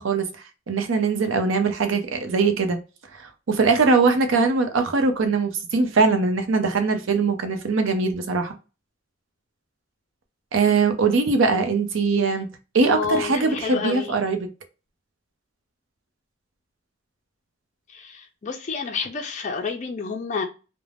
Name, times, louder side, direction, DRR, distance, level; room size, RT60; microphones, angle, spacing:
voice 1, 0.0-2.8 3.1-8.5 10.5-12.5 12.7-14.5, right 4 dB, 70° right, 0.5 m, -21 dB
voice 2, 12.9-14.1 17.9-20.4, left 5 dB, 35° left, 0.4 m, -29 dB
2.4 x 2.1 x 3.2 m
head